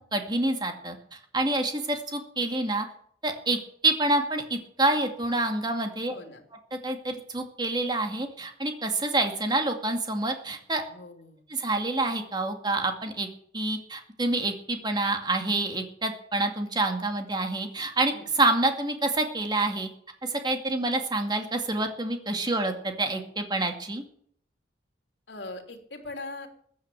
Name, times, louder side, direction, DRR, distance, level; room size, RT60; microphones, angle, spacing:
voice 1, 0.1-2.9 3.2-3.6 3.8-6.1 6.7-10.8 11.5-13.3 13.5-19.9 20.2-24.0, right 2 dB, 25° right, 4 dB, 2.3 m, -27 dB
voice 2, 6.1-6.4 10.9-11.4 18.1-18.3 22.4-22.6 25.3-26.5, left 2 dB, 70° left, 4 dB, 3.2 m, -41 dB
15.0 x 10.5 x 7.5 m, 0.62 s
head